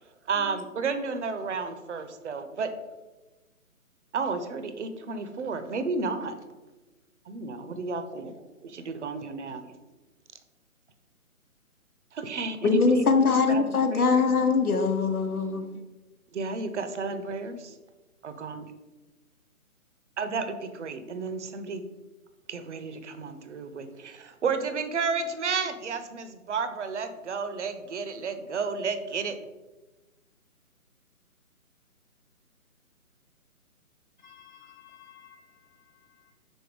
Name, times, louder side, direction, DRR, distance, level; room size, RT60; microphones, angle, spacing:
voice 1, 0.3-2.7 4.1-6.3 7.3-9.8 12.1-14.1 16.3-17.7 18.2-18.7 20.2-21.8 22.5-29.4, right 4 dB, 55° right, 0.8 m, -32 dB
voice 2, 12.6-15.7, left 4 dB, 80° left, 1.2 m, -22 dB
voice 3, 34.2-36.3, left 8 dB, 30° left, 0.8 m, -52 dB
6.2 x 4.5 x 5.0 m
hypercardioid pair, 155°, 43 cm